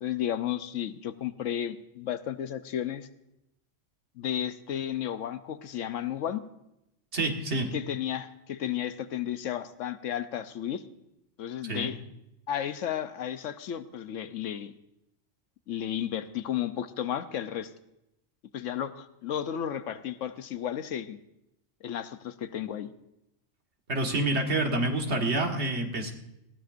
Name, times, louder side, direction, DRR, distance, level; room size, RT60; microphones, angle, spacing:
voice 1, 0.0-3.1 4.2-6.4 7.7-10.8 11.4-12.0 12.5-14.7 15.7-17.7 18.5-21.2 21.8-22.9, left 10 dB, 85° left, 11 dB, 1.1 m, -33 dB
voice 2, 7.1-7.7 11.6-11.9 23.9-26.1, right 2 dB, 60° right, 2 dB, 1.9 m, -28 dB
20.0 x 15.5 x 2.6 m, 0.86 s
omnidirectional pair, 1.3 m